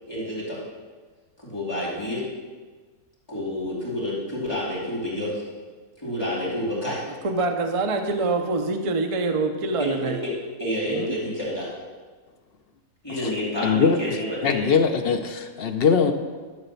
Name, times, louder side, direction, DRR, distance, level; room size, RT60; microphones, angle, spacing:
voice 1, 0.1-0.6 1.4-2.2 3.3-5.4 6.0-7.0 9.8-10.3 10.6-11.7 13.0-14.7, left 1 dB, 15° left, -8 dB, 2.8 m, -29 dB
voice 2, 7.2-10.2 10.9-11.2, right 3 dB, 50° right, 5 dB, 0.4 m, -25 dB
voice 3, 13.6-14.0 14.4-16.1, left 6 dB, 60° left, 6 dB, 0.6 m, -21 dB
12.0 x 4.1 x 6.9 m, 1.4 s
omnidirectional pair, 1.6 m